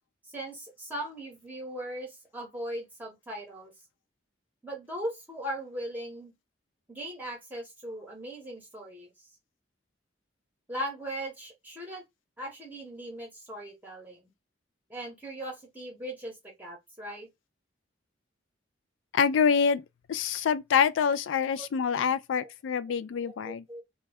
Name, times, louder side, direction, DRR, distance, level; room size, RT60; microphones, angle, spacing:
voice 1, 0.3-3.7 4.6-6.3 6.9-9.1 10.7-12.0 12.4-14.3 14.9-17.3 21.6-21.7 22.4-22.5 22.9-23.0 23.2-23.8, right 1 dB, 10° right, 0.9 m, -39 dB
voice 2, 19.1-19.8 20.1-23.6, left 6 dB, 80° left, 0.3 m, -26 dB
2.2 x 2.1 x 3.4 m
head